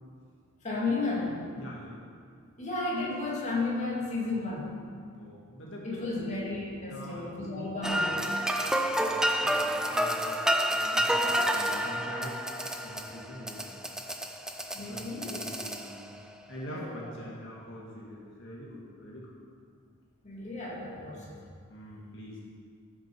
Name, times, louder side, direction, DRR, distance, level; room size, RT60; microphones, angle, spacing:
voice 1, 0.6-1.5 2.6-4.7 5.8-8.1 14.7-15.4 16.7-17.0 20.2-21.4, left 3 dB, 30° left, -5 dB, 2.3 m, -33 dB
voice 2, 1.5-2.0 5.1-6.4 6.8-8.6 8.9-10.3 10.7-12.4 12.6-13.7 14.9-15.9 16.5-19.3 21.0-21.3 21.7-22.4, equal, 55° left, -4 dB, 1.9 m, -44 dB
sound 1, 7.8-16.2, equal, 5° right, 0.5 m, -29 dB
18.0 x 6.5 x 4.6 m, 2.2 s
head